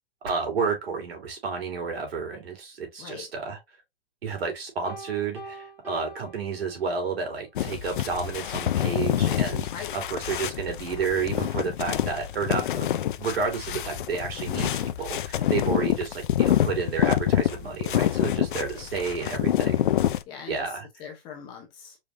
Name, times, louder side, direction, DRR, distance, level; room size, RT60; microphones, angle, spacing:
voice 1, 0.2-3.6 4.2-9.7 9.9-12.9 13.2-19.8 20.5-20.9, right 5 dB, 80° right, 3.0 m, -31 dB
Piano, 4.8-7.2, right 2 dB, 5° right, 1.5 m, -43 dB
sound 1, 7.6-20.2, left 11 dB, 55° left, 0.5 m, -26 dB
voice 2, 18.7-19.3 20.3-22.0, left 7 dB, 15° left, 0.8 m, -42 dB
5.1 x 3.6 x 2.6 m
hypercardioid pair, 170°, 30 cm